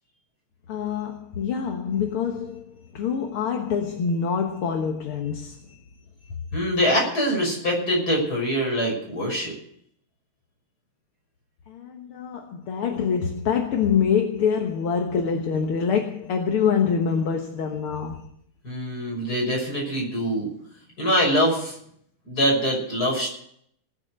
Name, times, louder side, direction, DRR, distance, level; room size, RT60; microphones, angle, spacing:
voice 1, 0.7-2.6 2.9-5.6 11.7-18.3, left 6 dB, 75° left, 2.2 m, -25 dB
voice 2, 6.5-9.5 18.6-20.5 21.0-21.8 22.3-23.3, equal, 45° left, 7.0 m, -24 dB
19.0 x 7.8 x 8.0 m
omnidirectional pair, 2.4 m